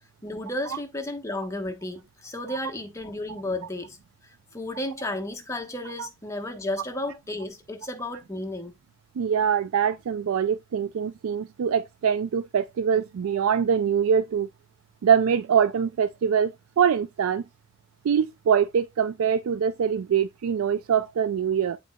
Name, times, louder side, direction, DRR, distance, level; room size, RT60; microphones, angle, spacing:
voice 1, 0.2-4.0 4.2-8.7, left 1 dB, 15° left, 1.0 m, -33 dB
voice 2, 9.2-14.5 15.0-17.4 18.0-21.8, right 7 dB, 90° right, 0.4 m, -24 dB
11.0 x 4.1 x 2.2 m
head